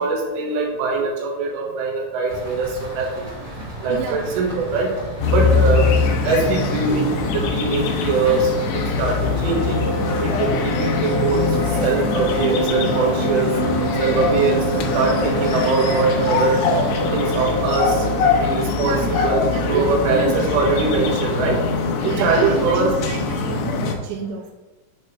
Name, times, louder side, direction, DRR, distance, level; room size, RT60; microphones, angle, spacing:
voice 1, 0.0-3.3 3.8-4.9 5.3-5.9 6.2-9.1 9.4-9.8 10.2-11.4 11.8-13.5 14.0-14.6 14.9-16.6 17.1-18.0 18.4-19.0 19.2-21.6 22.0-22.9, right 4 dB, 70° right, -1 dB, 3.2 m, -22 dB
sound 1, 2.3-17.4, equal, 35° right, 2.0 m, -34 dB
voice 2, 3.9-4.3 10.3-10.4 18.7-20.7 22.0-24.5, right 7 dB, 85° right, 1 dB, 2.7 m, -30 dB
sound 2, 5.2-24.0, left 4 dB, 85° left, 2.5 m, -22 dB
sound 3, 9.5-18.4, right 2 dB, 40° left, 1.8 m, -27 dB
7.8 x 3.2 x 5.4 m, 1.1 s
omnidirectional pair, 5.7 m